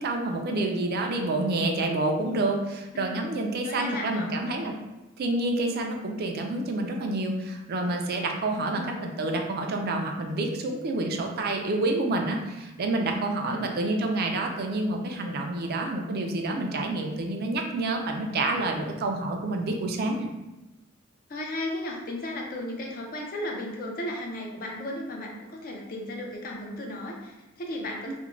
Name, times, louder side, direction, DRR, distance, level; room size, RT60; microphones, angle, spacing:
voice 1, 0.0-4.7 5.2-20.3 28.1-28.2, right 2 dB, 50° right, 3 dB, 0.4 m, -28 dB
voice 2, 2.9-4.3 8.5-9.1 13.4-13.8 21.3-28.1, left 1 dB, 45° left, 0 dB, 0.5 m, -35 dB
2.4 x 2.1 x 3.0 m, 1.0 s
head